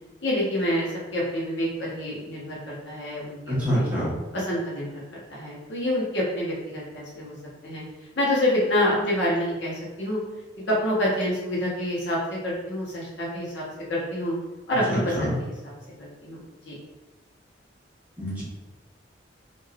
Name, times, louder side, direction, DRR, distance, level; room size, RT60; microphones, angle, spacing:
voice 1, 0.2-3.8 4.3-5.0 5.3-7.3 7.6-7.8 8.2-10.2 10.7-13.6 13.9-14.3 14.7-15.7 16.0-16.4 16.6-16.8, left 1 dB, 65° left, -6 dB, 0.9 m, -27 dB
voice 2, 3.5-4.1 14.9-15.3 18.2-18.4, equal, 10° right, -9 dB, 0.9 m, -26 dB
3.3 x 2.5 x 2.3 m, 1.1 s
head